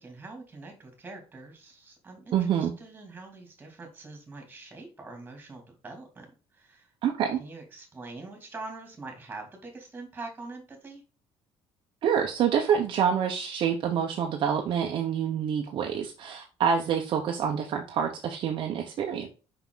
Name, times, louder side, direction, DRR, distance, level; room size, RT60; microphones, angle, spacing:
voice 1, 0.0-6.3 6.5-6.9 7.4-11.0, right 3 dB, 15° right, 2.7 m, -44 dB
voice 2, 2.3-2.7 7.0-7.4 12.0-19.3, right 8 dB, 50° right, 1.0 m, -27 dB
5.9 x 5.9 x 3.9 m
cardioid pair, 170°, 11 cm